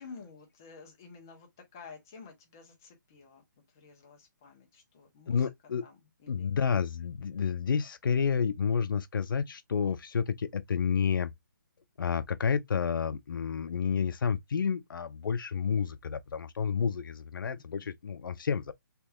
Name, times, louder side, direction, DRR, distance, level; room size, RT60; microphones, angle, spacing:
voice 1, 0.0-3.4 3.7-5.5 5.8-6.5 17.5-17.9, left 5 dB, 10° left, 0.3 m, -51 dB
voice 2, 5.3-5.8 6.3-11.3 12.0-18.7, left 6 dB, 80° left, 0.4 m, -30 dB
3.3 x 2.3 x 2.7 m
hypercardioid pair, 175°, 11 cm